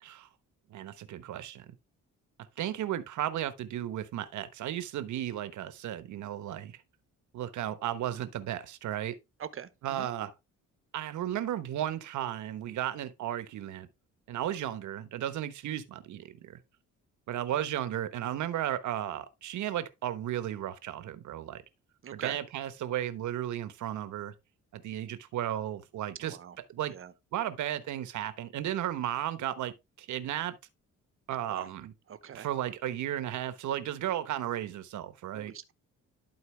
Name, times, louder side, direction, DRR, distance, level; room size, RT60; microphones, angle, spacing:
voice 1, 0.7-1.7 2.6-6.8 7.3-9.2 9.8-10.3 10.9-13.9 14.3-16.6 17.3-21.6 22.1-24.3 24.7-26.9 27.3-30.6 31.3-31.9 32.3-35.5, right 11 dB, 75° right, 1.1 m, -34 dB
voice 2, 9.4-10.1 22.0-22.4 26.2-26.6 26.9-27.1 31.5-31.7 32.1-32.5 35.3-35.7, right 8 dB, 45° right, 1.0 m, -42 dB
12.0 x 4.4 x 3.2 m
cardioid pair, 90°, 30 cm